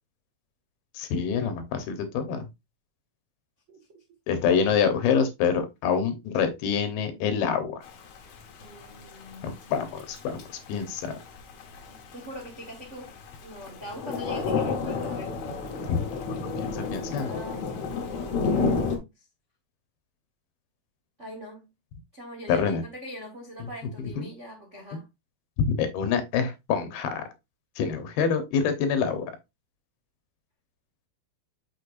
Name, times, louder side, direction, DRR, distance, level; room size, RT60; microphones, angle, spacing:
voice 1, 0.9-2.5 4.3-7.8 9.4-10.4 10.7-11.1 15.9-16.0 16.7-17.3 22.5-22.8 23.6-23.7 24.0-24.3 25.7-27.2 27.8-29.3, left 6 dB, 80° left, 2.9 m, -26 dB
voice 2, 3.7-4.0 8.6-9.7 11.9-13.1 13.4-15.3 16.8-19.1 21.2-21.7 22.1-25.1, equal, 50° right, 0.8 m, -43 dB
Thunder / Rain, 7.8-19.0, left 4 dB, 60° left, 2.2 m, -31 dB
6.7 x 6.5 x 2.6 m
omnidirectional pair, 4.3 m